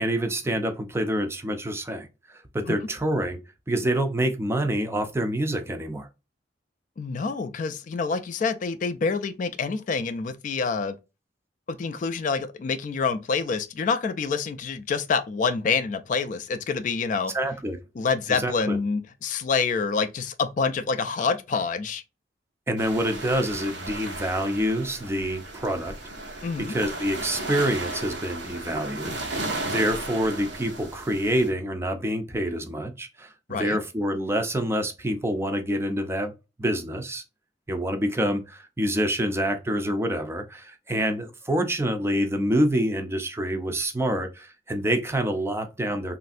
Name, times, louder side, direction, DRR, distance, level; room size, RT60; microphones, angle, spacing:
voice 1, 0.0-3.4 3.7-6.1 17.3-17.8 18.3-18.8 22.7-25.9 26.6-36.3 36.6-37.2 37.7-46.2, right 1 dB, 15° right, 0.4 m, -27 dB
voice 2, 7.0-10.9 11.7-17.3 18.0-22.0 26.4-26.7 33.5-33.8, left 5 dB, 45° left, 0.3 m, -27 dB
sound 1, 22.8-31.5, right 2 dB, 85° right, 0.8 m, -35 dB
3.1 x 2.5 x 2.5 m
head